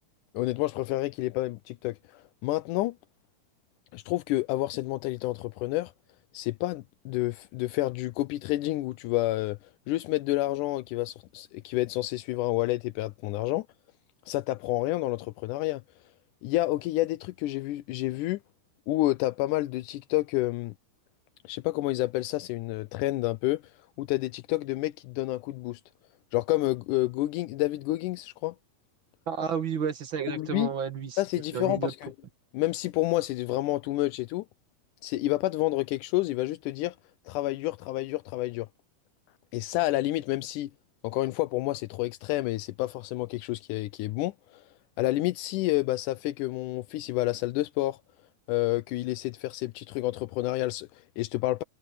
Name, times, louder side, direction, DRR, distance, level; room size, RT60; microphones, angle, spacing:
voice 1, 0.3-2.9 3.9-5.9 6.3-9.6 9.9-13.7 14.3-15.8 16.4-18.4 18.9-20.7 21.4-23.6 24.0-25.8 26.3-28.5 30.3-30.7 31.2-32.1 32.5-34.4 35.0-36.9 37.3-38.7 39.5-40.7 41.0-44.6 45.0-48.0 48.5-51.6, left 17 dB, 85° left, 1.8 m, -29 dB
voice 2, 29.3-31.2 31.5-31.9, right 6 dB, 40° right, 2.2 m, -31 dB
omnidirectional pair, 4.3 m